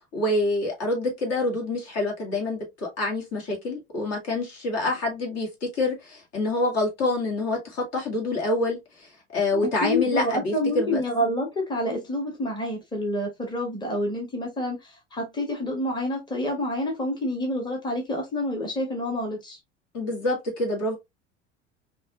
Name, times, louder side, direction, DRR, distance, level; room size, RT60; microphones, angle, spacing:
voice 1, 0.1-11.0 19.9-21.0, left 2 dB, 45° left, 2.1 m, -27 dB
voice 2, 9.5-19.6, left 1 dB, 10° left, 1.5 m, -28 dB
5.2 x 2.7 x 2.3 m
figure-of-eight pair, 75°, 35 cm